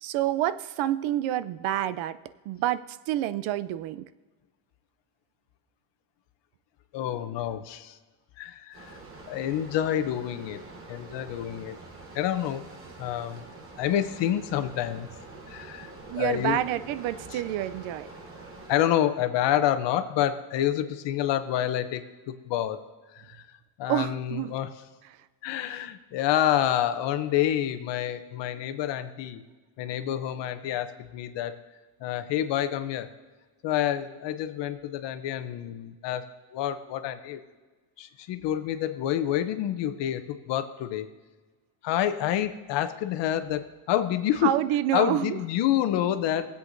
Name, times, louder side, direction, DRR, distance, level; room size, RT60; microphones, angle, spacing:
voice 1, 0.0-2.2 2.5-4.0 16.1-18.1 23.9-24.5 25.6-25.8 44.4-45.4, right 12 dB, 70° right, 15 dB, 0.6 m, -28 dB
voice 2, 6.9-8.0 8.4-9.0 9.3-10.6 10.9-11.8 12.1-12.6 13.0-13.4 13.8-15.1 15.5-16.6 17.3-17.4 18.7-22.8 23.1-23.5 23.8-24.7 25.4-29.4 29.8-31.6 32.0-33.1 33.6-36.2 36.5-37.4 38.0-41.1 41.8-44.5 44.9-46.5, left 11 dB, 60° left, 10 dB, 0.8 m, -28 dB
sound 1, 8.7-18.8, right 3 dB, 25° right, 1.0 m, -46 dB
19.0 x 8.1 x 2.6 m, 1.3 s
cardioid pair, 175°, 49 cm